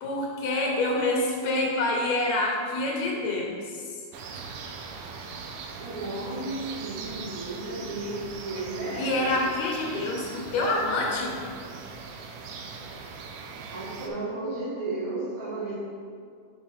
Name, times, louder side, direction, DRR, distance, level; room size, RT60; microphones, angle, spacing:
voice 1, 0.0-4.0 9.0-11.4, left 2 dB, 65° left, -1 dB, 2.2 m, -27 dB
sound 1, 4.1-14.1, right 4 dB, 90° right, 2.2 m, -40 dB
voice 2, 5.8-9.5 13.7-15.7, right 2 dB, 45° right, -10 dB, 2.3 m, -33 dB
5.5 x 5.3 x 4.9 m, 2.1 s
omnidirectional pair, 3.6 m